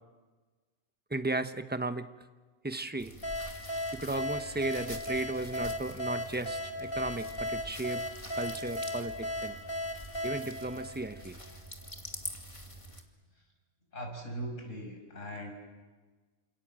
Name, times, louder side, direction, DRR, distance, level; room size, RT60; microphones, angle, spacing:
voice 1, 1.1-2.1 2.6-3.1 3.9-8.0 8.3-9.6 10.2-11.4, right 2 dB, 10° right, 9 dB, 0.9 m, -35 dB
sound 1, 3.0-13.0, equal, 25° left, 2.4 m, -46 dB
sound 2, 3.2-11.7, left 1 dB, 45° left, 3.4 m, -37 dB
voice 2, 13.9-15.5, right 1 dB, 75° left, 2 dB, 6.5 m, -40 dB
28.0 x 27.5 x 7.7 m, 1.3 s
omnidirectional pair, 1.3 m